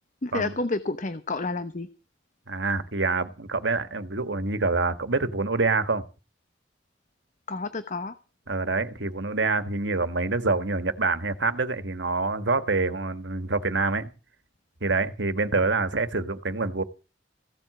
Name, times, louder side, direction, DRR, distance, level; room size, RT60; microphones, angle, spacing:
voice 1, 0.2-1.9 7.5-8.1, left 3 dB, 45° left, 1.0 m, -30 dB
voice 2, 2.5-6.0 8.5-14.1 14.8-16.8, right 3 dB, 85° right, 1.6 m, -26 dB
16.0 x 8.0 x 7.8 m
head